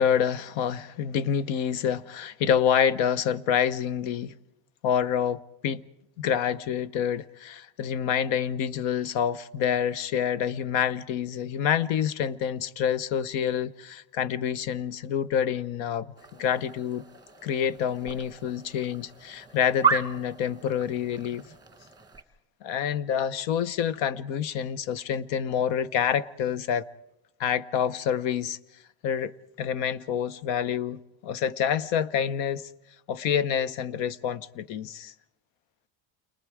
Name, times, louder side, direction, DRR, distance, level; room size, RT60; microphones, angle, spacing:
voice 1, 0.0-4.3 4.8-5.8 6.2-17.0 17.4-21.4 22.6-26.9 27.4-28.6 29.0-29.3 29.6-32.7 33.1-35.1, left 8 dB, 85° left, 0.9 m, -27 dB
sound 1, 16.2-22.2, right 6 dB, 10° right, 1.3 m, -34 dB
29.5 x 23.5 x 4.9 m
cardioid pair, 145°, 44 cm